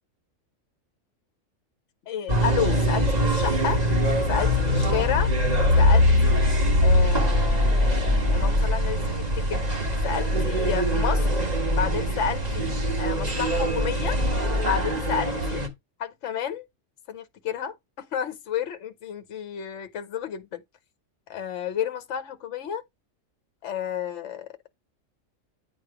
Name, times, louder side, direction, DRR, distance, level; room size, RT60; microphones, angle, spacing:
voice 1, 2.1-3.8 4.3-5.3 5.7-6.4 6.8-9.6 10.0-11.2 11.7-12.7 13.0-14.2 14.6-15.6 16.0-16.7 17.1-20.6 21.3-22.8 23.6-24.5, left 8 dB, 65° left, 1.1 m, -31 dB
sound 1, 2.3-15.7, left 1 dB, 30° right, 1.7 m, -22 dB
9.3 x 3.1 x 4.8 m
omnidirectional pair, 1.4 m